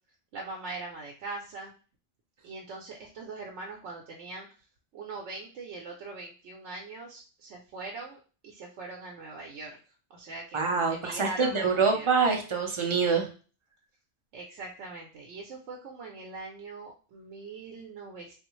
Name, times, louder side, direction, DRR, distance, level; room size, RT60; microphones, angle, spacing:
voice 1, 0.3-1.7 2.4-4.5 4.9-8.2 8.4-9.8 10.1-12.1 14.3-18.3, right 3 dB, 85° right, 0 dB, 0.9 m, -41 dB
voice 2, 10.5-13.3, right 5 dB, 35° right, 2 dB, 0.5 m, -25 dB
3.4 x 2.4 x 3.0 m, 0.37 s
omnidirectional pair, 1.2 m